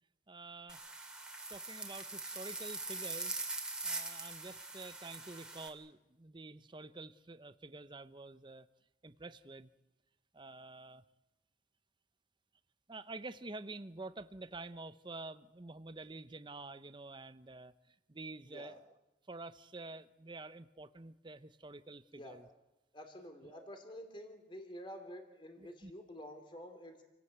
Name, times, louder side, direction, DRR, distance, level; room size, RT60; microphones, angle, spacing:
voice 1, 0.3-0.8 1.5-3.3 3.8-8.7 9.0-9.7 10.3-11.0 12.9-17.7 18.1-18.8 19.3-22.5 23.4-23.7 25.6-25.9, right 2 dB, 25° right, 12 dB, 0.8 m, -48 dB
sound 1, 0.7-5.7, right 3 dB, 5° right, 2.7 m, -42 dB
voice 2, 18.5-18.8 22.1-22.4 22.9-27.0, equal, 25° left, 6 dB, 2.7 m, -49 dB
28.5 x 18.0 x 8.1 m, 1.0 s
head